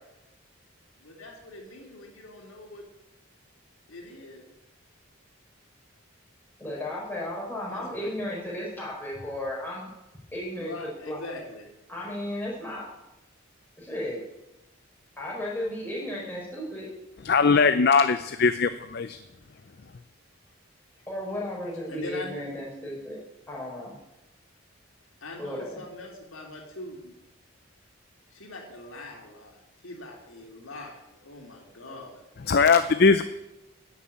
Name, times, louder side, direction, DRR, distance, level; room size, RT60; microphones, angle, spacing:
voice 1, 1.0-2.8 3.9-4.4 7.7-8.2 10.6-11.7 21.9-22.4 25.2-27.1 28.3-32.2, left 2 dB, 80° left, 0 dB, 3.3 m, -42 dB
voice 2, 6.6-9.9 10.3-11.2 11.9-12.9 13.8-14.2 15.2-16.9 21.1-23.9 25.4-25.8, left 1 dB, 10° left, -4 dB, 4.8 m, -34 dB
voice 3, 17.2-19.2 32.5-33.2, left 4 dB, 50° left, 11 dB, 0.5 m, -20 dB
11.0 x 8.2 x 8.8 m, 0.95 s
head